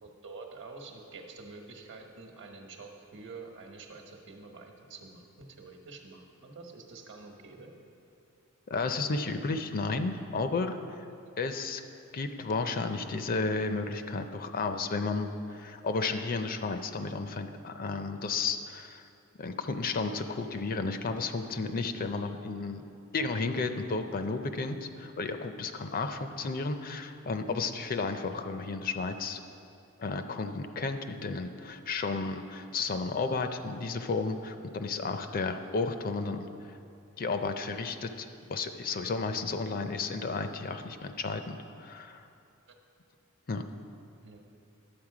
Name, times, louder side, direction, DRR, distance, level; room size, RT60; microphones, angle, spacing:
voice 1, 0.0-7.7 11.3-11.4 26.1-26.2 31.2-31.3 42.7-42.8 44.2-44.4, right 3 dB, 60° right, 3 dB, 1.1 m, -47 dB
voice 2, 8.7-10.8 11.4-11.8 12.1-19.0 19.4-22.8 23.1-29.4 30.0-36.5 37.2-42.2 43.5-43.7, left 3 dB, 40° left, 8 dB, 0.5 m, -33 dB
10.5 x 7.7 x 4.9 m, 2.5 s
head